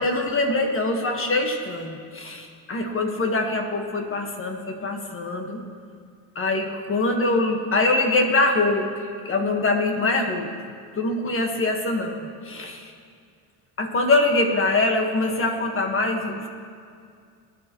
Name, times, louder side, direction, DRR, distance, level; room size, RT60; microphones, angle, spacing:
voice 1, 0.0-5.6 6.3-8.9 9.2-10.5 11.0-12.9 13.8-16.5, left 2 dB, 30° left, 3 dB, 1.5 m, -23 dB
19.5 x 11.0 x 3.1 m, 2.2 s
supercardioid pair, 105°, 41 cm